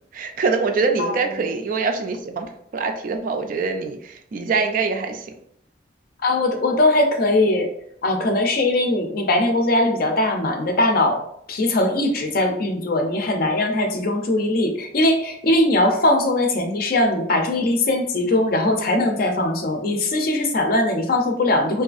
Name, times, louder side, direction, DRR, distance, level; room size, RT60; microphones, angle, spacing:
voice 1, 0.1-5.3, right 4 dB, 50° right, 6 dB, 0.3 m, -24 dB
voice 2, 6.2-7.7 8.0-11.2 11.5-21.8, left 1 dB, 55° left, 4 dB, 0.4 m, -20 dB
2.6 x 2.3 x 2.4 m, 0.68 s
head